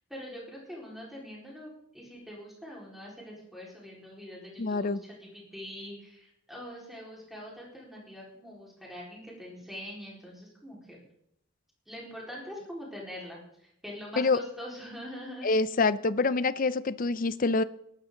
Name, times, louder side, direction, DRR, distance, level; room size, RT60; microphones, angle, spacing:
voice 1, 0.1-11.0 11.9-13.4 13.8-15.5, equal, ahead, -4 dB, 4.3 m, -43 dB
voice 2, 4.6-5.0 14.2-14.4 15.4-17.6, left 3 dB, 40° left, 16 dB, 0.5 m, -26 dB
18.5 x 11.5 x 3.8 m, 0.73 s
head